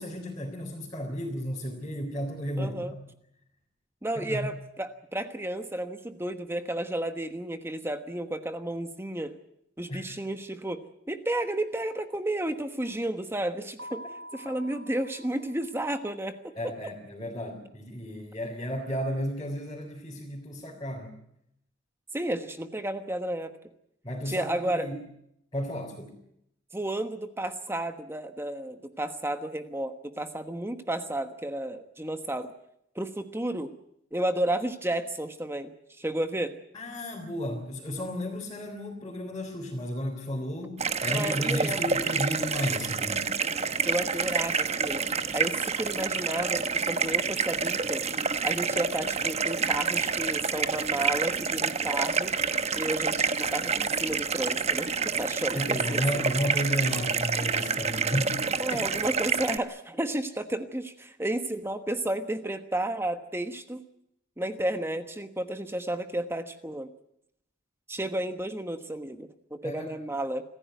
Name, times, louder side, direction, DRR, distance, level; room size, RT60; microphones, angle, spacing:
voice 1, 0.0-3.0 4.1-4.5 9.9-10.1 16.6-21.1 24.0-25.0 25.5-26.1 36.7-43.3 55.5-58.4 58.7-58.8 69.6-69.9, equal, 20° left, -3 dB, 3.9 m, -33 dB
voice 2, 2.6-2.9 4.0-9.3 9.8-14.0 14.3-16.7 22.1-23.5 24.3-24.9 26.7-32.5 32.9-33.7 34.1-35.7 36.0-36.6 41.1-41.8 43.8-45.1 45.3-48.0 48.4-52.3 52.8-56.3 58.6-63.8 64.4-66.9 67.9-70.4, right 1 dB, 10° right, 9 dB, 1.2 m, -32 dB
Keyboard (musical), 13.8-16.3, equal, 60° right, 1.6 m, -46 dB
sound 1, 40.8-59.6, right 5 dB, 30° right, 1.0 m, -28 dB
26.5 x 15.0 x 9.3 m, 0.78 s
head